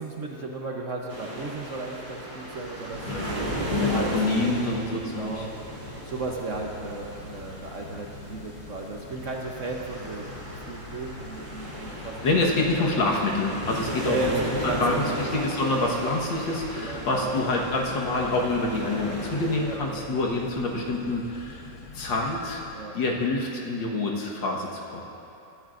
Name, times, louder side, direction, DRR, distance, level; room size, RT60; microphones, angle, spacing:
voice 1, 0.0-4.7 5.1-5.5 5.8-13.0 14.0-14.8 15.1-15.4 16.8-17.9 19.6-20.0 22.7-23.0, right 3 dB, 50° right, 0 dB, 1.1 m, -35 dB
sound 1, 1.1-19.8, right 1 dB, 25° right, 2.5 m, -36 dB
sound 2, 2.9-22.8, left 3 dB, 60° left, 1.5 m, -45 dB
voice 2, 3.0-5.4 12.2-21.7 21.9-25.0, left 2 dB, 75° left, -2 dB, 2.1 m, -27 dB
22.5 x 13.5 x 2.6 m, 2.8 s
omnidirectional pair, 2.1 m